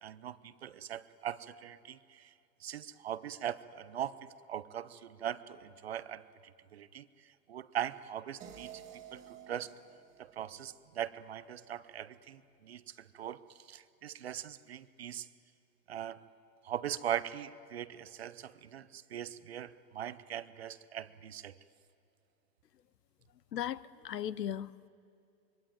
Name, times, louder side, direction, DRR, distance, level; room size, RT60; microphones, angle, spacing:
voice 1, 0.0-2.3 2.6-6.2 6.7-7.1 7.5-8.8 9.1-9.7 10.2-13.4 13.7-15.3 15.9-16.2 16.6-21.6, right 10 dB, 40° right, 15 dB, 0.7 m, -40 dB
sound 1, 8.4-11.5, right 8 dB, 15° right, 1.9 m, -53 dB
voice 2, 23.5-24.9, left 10 dB, 75° left, 19 dB, 1.0 m, -37 dB
26.0 x 23.0 x 9.2 m, 2.7 s
hypercardioid pair, 160°, 49 cm